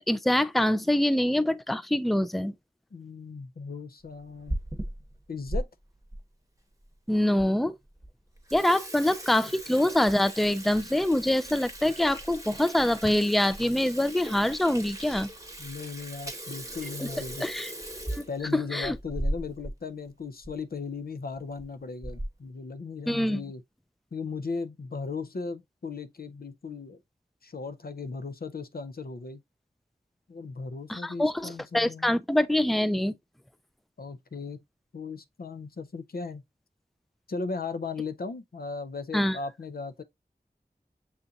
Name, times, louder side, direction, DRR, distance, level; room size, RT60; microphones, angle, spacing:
voice 1, 0.0-2.5 7.1-7.8 8.5-15.3 17.0-17.1 17.4-17.7 18.1-18.3 18.5-19.0 23.1-23.4 30.9-33.2 39.1-39.4, left 1 dB, ahead, 0.3 m, -25 dB
voice 2, 2.9-4.6 5.3-5.7 15.6-17.4 18.3-23.6 24.1-27.0 27.4-29.4 30.3-32.2 34.0-34.6 34.9-36.4 37.3-40.0, left 4 dB, 65° left, 0.5 m, -37 dB
Water tap faucet / Sink (filling or washing), 4.2-5.6 6.1-6.2 6.9-7.0 7.4-7.5 7.9-8.1 8.4-19.8 20.1-20.2 20.4-20.6 21.4-21.6 22.0-22.5, right 1 dB, 20° right, 0.9 m, -37 dB
6.9 x 2.5 x 2.6 m
wide cardioid pair, 50°, 17 cm